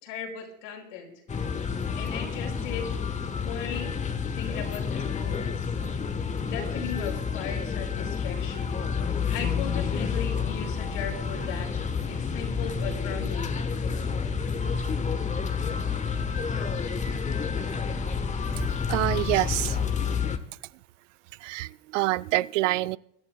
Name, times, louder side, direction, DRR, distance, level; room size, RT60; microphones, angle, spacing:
voice 1, 0.0-1.1 1.9-4.0 4.3-5.7 6.4-13.5, left 7 dB, 75° left, 5.3 m, -38 dB
sound 1, 1.3-20.4, left 6 dB, 20° left, 1.1 m, -29 dB
voice 2, 18.9-19.8 21.4-23.0, right 19 dB, 75° right, 0.5 m, -26 dB
24.5 x 11.5 x 2.3 m
hypercardioid pair, 95°, 37 cm